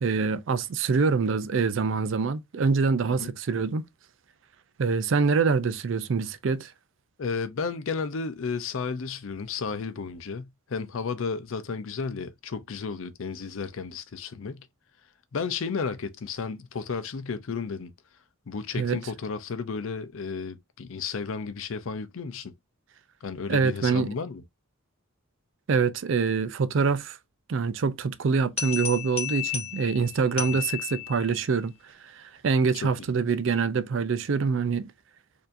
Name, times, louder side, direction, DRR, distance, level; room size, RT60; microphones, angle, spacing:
voice 1, 0.0-3.9 4.8-6.7 18.7-19.0 23.5-24.1 25.7-27.2 27.5-31.7 32.0-34.9, right 5 dB, 60° right, 0.4 m, -25 dB
voice 2, 7.2-14.7 15.3-17.9 18.5-22.5 23.2-24.4 30.4-30.6 32.8-32.9, left 5 dB, 70° left, 0.5 m, -33 dB
sound 1, 28.6-31.5, left 9 dB, 30° left, 1.0 m, -33 dB
4.4 x 2.8 x 2.5 m
head